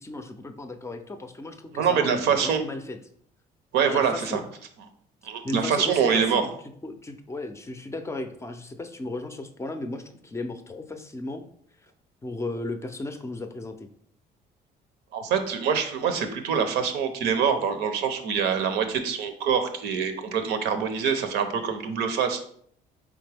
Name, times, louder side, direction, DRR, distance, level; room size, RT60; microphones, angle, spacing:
voice 1, 0.0-3.0 3.9-4.4 5.4-6.5 6.8-11.4 12.2-13.9, left 2 dB, 15° left, 7 dB, 0.4 m, -35 dB
voice 2, 1.7-2.6 3.7-4.4 5.2-6.5 15.1-22.4, right 7 dB, 85° right, 8 dB, 0.7 m, -25 dB
4.2 x 3.5 x 3.3 m, 0.62 s
cardioid pair, 110°, 17 cm